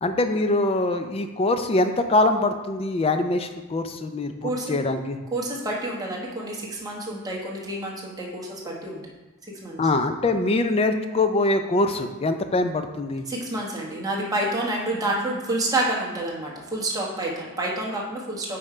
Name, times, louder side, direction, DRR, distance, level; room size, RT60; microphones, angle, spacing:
voice 1, 0.0-5.2 9.8-13.2, left 2 dB, 25° left, 8 dB, 0.4 m, -23 dB
voice 2, 4.4-4.8 5.3-9.0 9.6-9.8 13.3-18.6, right 1 dB, 15° right, -3 dB, 1.1 m, -28 dB
5.4 x 4.2 x 4.9 m, 1.1 s
head